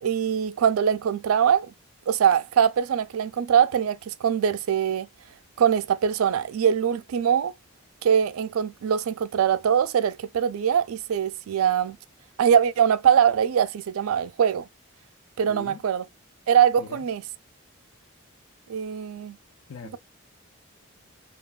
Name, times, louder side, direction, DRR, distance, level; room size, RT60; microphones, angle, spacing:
voice 1, 0.0-1.7 2.1-5.1 5.6-7.5 8.0-12.0 12.4-14.7 15.4-16.0 16.5-17.2 18.7-19.4, right 8 dB, 80° right, 0.3 m, -22 dB
voice 2, 15.5-15.8 16.8-17.0 19.7-20.0, left 4 dB, 75° left, 0.5 m, -41 dB
2.9 x 2.2 x 2.2 m
head